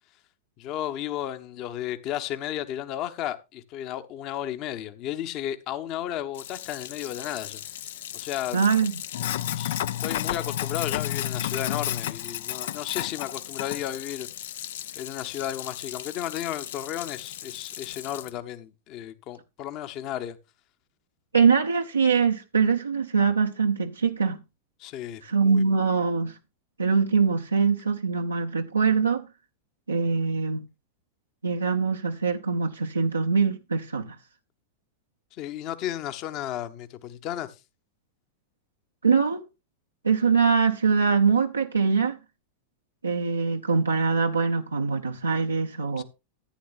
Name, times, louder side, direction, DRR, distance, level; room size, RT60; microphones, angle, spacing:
voice 1, 0.6-7.6 8.1-8.6 9.5-14.3 15.0-20.4 24.8-25.7 35.3-37.5 46.0-46.1, left 11 dB, 40° left, 1.0 m, -33 dB
Sink (filling or washing), 6.3-18.3, left 11 dB, 55° left, 0.5 m, -33 dB
voice 2, 8.5-8.9 21.3-24.4 25.2-26.4 26.8-29.2 29.9-30.6 31.4-34.2 39.0-39.4 40.0-42.2 43.0-46.0, right 5 dB, 80° right, 0.8 m, -23 dB
14.5 x 9.4 x 2.5 m
figure-of-eight pair, 90°, 0 cm